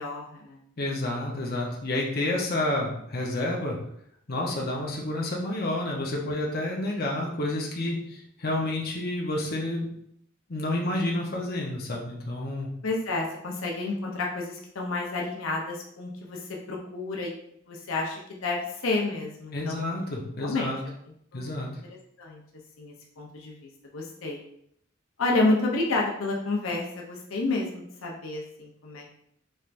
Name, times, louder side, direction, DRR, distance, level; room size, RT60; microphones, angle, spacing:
voice 1, 0.0-0.6 12.8-16.4 16.7-17.3 17.7-19.8 20.4-20.7 21.3-21.5 22.2-22.4 22.8-24.4 25.2-29.2, left 2 dB, 80° left, -1 dB, 0.7 m, -30 dB
voice 2, 0.8-3.8 4.3-9.9 10.5-12.7 19.5-20.8 21.3-21.7, left 1 dB, 50° left, -2 dB, 0.8 m, -29 dB
4.3 x 3.3 x 2.5 m, 0.71 s
head